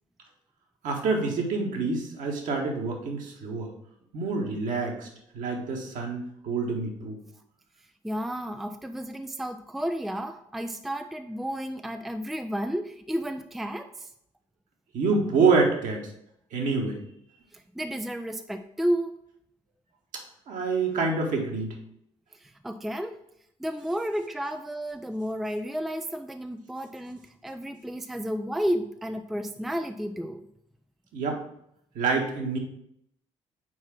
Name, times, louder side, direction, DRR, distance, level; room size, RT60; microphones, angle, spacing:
voice 1, 0.8-3.7 4.1-5.1 5.3-7.2 14.9-16.1 16.5-17.0 20.5-21.8 31.1-31.4 31.9-32.6, right 4 dB, 55° right, 1 dB, 1.6 m, -27 dB
voice 2, 8.0-14.1 17.5-19.2 22.3-23.2 23.6-30.5, equal, ahead, 7 dB, 0.4 m, -32 dB
4.7 x 4.6 x 6.0 m, 0.75 s
figure-of-eight pair, 50°, 16 cm